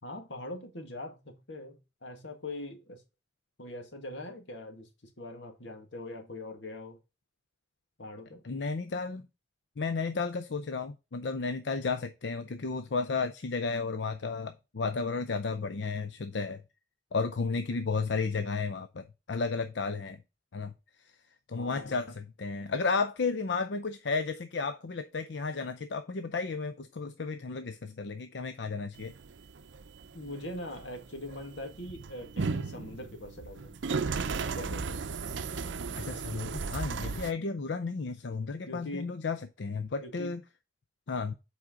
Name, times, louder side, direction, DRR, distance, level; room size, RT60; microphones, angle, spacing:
voice 1, 0.0-3.0 3.6-4.9 5.2-7.0 8.0-8.4 21.5-22.0 30.1-33.8 34.5-35.0 38.7-39.1 40.0-40.3, left 1 dB, 90° left, 1.9 m, -42 dB
voice 2, 8.4-9.3 9.8-16.6 17.1-20.2 20.5-20.7 21.0-21.1 21.5-29.1 36.0-40.4 41.1-41.3, left 4 dB, 70° left, 0.6 m, -33 dB
sound 1, 29.0-37.3, right 4 dB, 85° right, 0.6 m, -36 dB
7.6 x 4.9 x 3.8 m
head